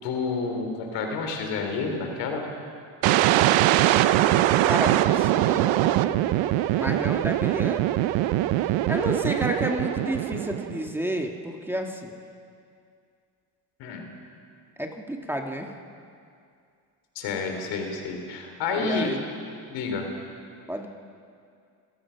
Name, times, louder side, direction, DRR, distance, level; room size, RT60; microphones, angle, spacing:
voice 1, 0.0-2.5 13.8-14.0 17.2-19.1 19.7-20.1, left 4 dB, 80° left, 3 dB, 3.7 m, -29 dB
sound 1, 3.0-10.9, right 14 dB, 85° right, 0.8 m, -22 dB
voice 2, 4.7-5.7 6.8-7.9 8.9-12.2 14.8-15.7 18.8-19.2 20.7-20.9, equal, 5° right, 2 dB, 1.9 m, -31 dB
29.5 x 16.0 x 5.9 m, 2.3 s
supercardioid pair, 85°, 43 cm